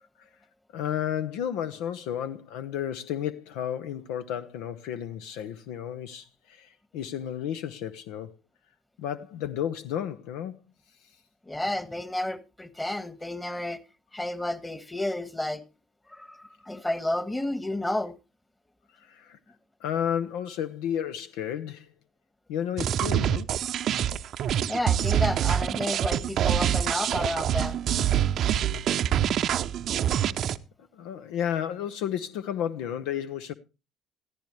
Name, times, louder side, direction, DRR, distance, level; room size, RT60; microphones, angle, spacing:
voice 1, 0.7-8.3 9.0-10.5 19.0-19.4 19.8-21.9 22.5-23.5 30.9-33.5, left 9 dB, 75° left, 0.7 m, -32 dB
voice 2, 11.5-13.8 14.1-15.6 16.1-18.2 24.7-27.8, left 1 dB, 10° left, 1.5 m, -31 dB
sound 1, 22.8-30.6, right 10 dB, 55° right, 0.6 m, -25 dB
14.5 x 14.0 x 3.2 m
hypercardioid pair, 65°, 0 cm